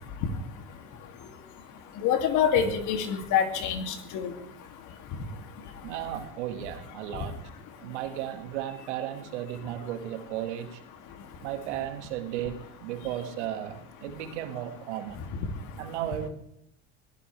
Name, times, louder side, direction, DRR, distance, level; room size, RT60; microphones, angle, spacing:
voice 1, 2.0-4.3, left 8 dB, 55° left, 6 dB, 2.6 m, -26 dB
voice 2, 5.8-7.5 7.8-10.8 11.4-15.2 15.8-16.3, right 12 dB, 75° right, 7 dB, 2.0 m, -35 dB
23.0 x 17.0 x 3.4 m, 0.74 s
hypercardioid pair, 80°, 35 cm